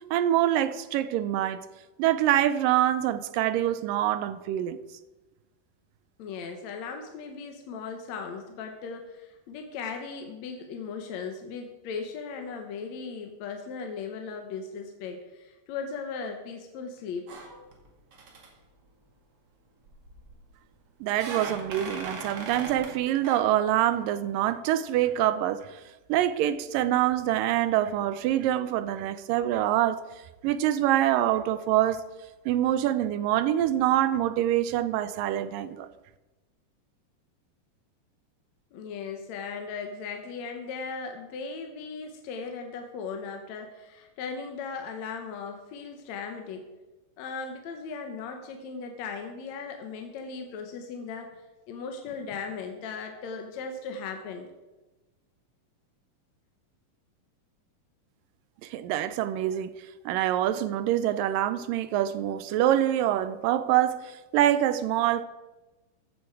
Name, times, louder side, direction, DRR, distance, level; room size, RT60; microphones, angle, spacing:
voice 1, 0.1-1.7 2.0-4.8 21.0-25.8 26.1-30.0 30.4-32.0 32.5-35.9 58.6-59.7 60.1-65.2, right 12 dB, 80° right, 2.2 m, -25 dB
voice 2, 6.2-17.3 38.7-46.7 47.2-54.5, left 5 dB, 65° left, 2.0 m, -37 dB
sound 1, 17.3-17.9 18.1-18.5 19.9-20.4 21.1-23.0 23.2-23.4, right 4 dB, 45° right, 2.5 m, -39 dB
15.0 x 9.9 x 4.8 m
omnidirectional pair, 4.1 m